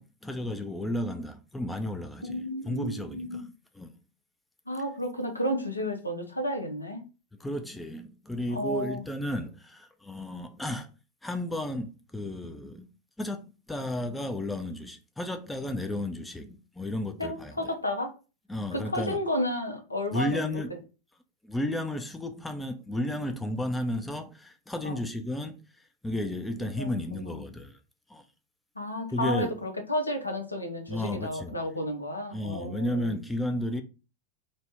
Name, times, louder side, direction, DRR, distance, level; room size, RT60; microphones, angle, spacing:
voice 1, 0.0-3.9 7.4-10.9 11.2-12.9 13.2-17.7 18.5-19.2 20.1-20.7 21.4-25.6 26.0-27.8 28.1-28.2 29.1-29.5 30.9-31.6 32.3-33.8, left 1 dB, 5° left, 0.3 m, -33 dB
voice 2, 2.3-3.5 4.7-7.0 8.5-9.0 17.2-18.1 18.7-20.6 24.8-25.0 26.8-27.4 28.8-33.2, left 1 dB, 80° left, 0.5 m, -32 dB
2.6 x 2.1 x 3.3 m
figure-of-eight pair, 90°, 0 cm